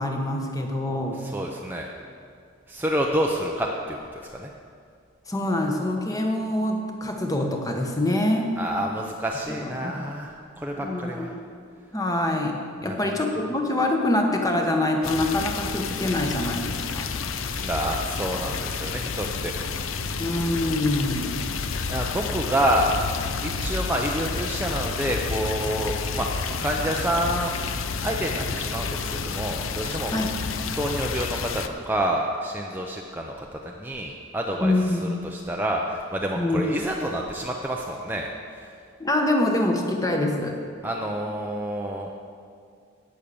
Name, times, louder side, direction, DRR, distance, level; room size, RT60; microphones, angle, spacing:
voice 1, 0.0-1.2 5.3-8.5 9.5-9.9 10.8-11.4 11.9-17.1 20.2-21.5 30.1-30.3 34.6-35.1 36.4-36.6 39.0-40.6, left 1 dB, 15° left, 2 dB, 1.2 m, -25 dB
voice 2, 1.1-1.9 2.7-4.5 8.6-11.3 12.8-13.0 17.5-19.5 21.6-23.0 23.4-27.5 28.0-30.1 30.8-38.8 40.8-42.1, right 1 dB, 10° right, 0 dB, 0.6 m, -28 dB
sound 1, 15.0-31.7, left 5 dB, 70° left, 0.7 m, -30 dB
17.5 x 6.5 x 7.0 m, 2.3 s
head